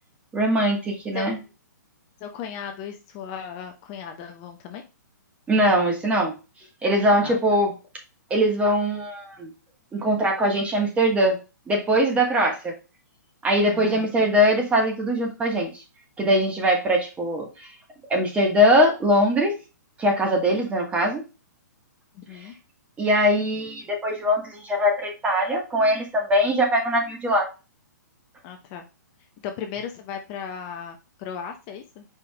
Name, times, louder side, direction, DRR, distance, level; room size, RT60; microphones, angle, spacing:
voice 1, 0.3-1.4 5.5-6.3 6.8-7.7 8.3-9.5 9.9-11.4 11.7-12.7 13.4-15.7 16.2-17.7 18.1-19.5 20.0-21.2 23.0-27.5, equal, 15° right, 1 dB, 1.4 m, -21 dB
voice 2, 2.2-4.8 5.7-5.9 7.2-7.4 13.6-14.3 22.1-22.5 28.4-28.8 29.4-32.0, left 7 dB, 35° left, 4 dB, 0.7 m, -36 dB
5.0 x 4.4 x 2.2 m, 0.29 s
hypercardioid pair, 135°, 10 cm